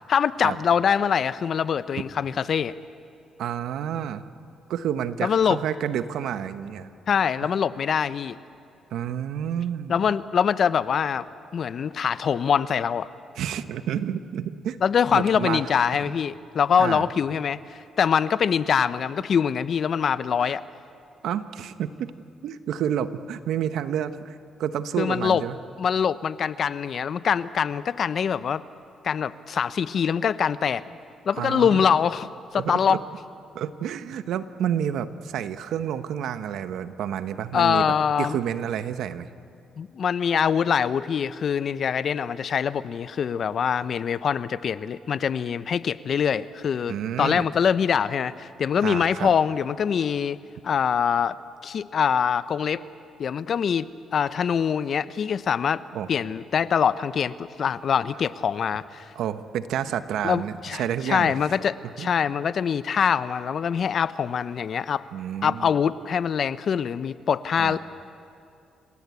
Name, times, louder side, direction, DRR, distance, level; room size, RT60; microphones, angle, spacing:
voice 1, 0.1-2.7 5.2-5.6 7.1-8.4 9.9-11.2 11.5-13.1 14.8-20.6 25.0-25.4 25.8-28.6 29.0-30.8 31.3-33.0 37.5-38.4 39.8-50.4 50.6-51.4 51.6-52.8 53.2-55.8 56.1-59.1 60.2-65.1 65.4-67.8, left 7 dB, 55° left, 15 dB, 0.7 m, -24 dB
voice 2, 3.4-4.2 4.7-6.9 8.9-9.9 13.4-14.8 15.1-15.7 16.0-16.1 16.8-17.1 20.4-20.6 21.2-22.1 22.4-24.3 24.6-25.6 31.4-31.8 32.6-33.0 33.5-37.9 38.2-39.3 46.9-47.5 48.8-49.3 55.9-56.1 59.1-61.4 62.0-62.1 65.1-65.7 67.6-67.8, right 9 dB, 80° right, 11 dB, 1.0 m, -29 dB
29.0 x 17.5 x 8.4 m, 2.4 s
cardioid pair, 90°, 0 cm